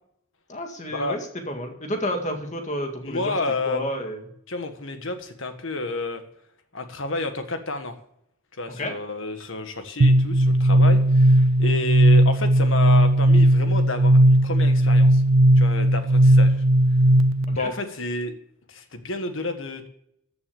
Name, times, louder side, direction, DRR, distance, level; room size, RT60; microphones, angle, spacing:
voice 1, 0.5-1.2 1.5-3.2 3.7-4.2 8.8-9.0 17.6-17.7, equal, 35° left, 4 dB, 2.0 m, -30 dB
voice 2, 3.0-3.8 4.5-6.2 6.7-8.0 8.6-15.2 15.6-16.6 17.5-18.3 18.7-19.9, left 2 dB, 65° left, 8 dB, 1.6 m, -30 dB
sound 1, 10.0-17.6, right 1 dB, 65° right, 0.6 m, -17 dB
14.5 x 6.9 x 7.1 m, 0.75 s
head